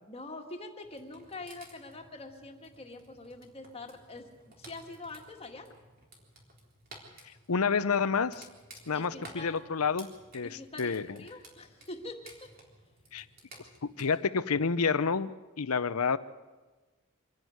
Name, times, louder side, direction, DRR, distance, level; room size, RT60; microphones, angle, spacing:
voice 1, 0.1-4.3 4.6-5.7 8.9-9.6 10.4-12.5, left 2 dB, 25° left, 4 dB, 1.9 m, -44 dB
sound 1, 0.8-14.0, right 2 dB, 40° right, 3.8 m, -55 dB
voice 2, 7.5-8.5 8.9-11.2 13.1-13.2 13.8-15.3 15.6-16.2, left 5 dB, 85° left, 14 dB, 0.8 m, -29 dB
25.0 x 11.0 x 9.5 m, 1.2 s
head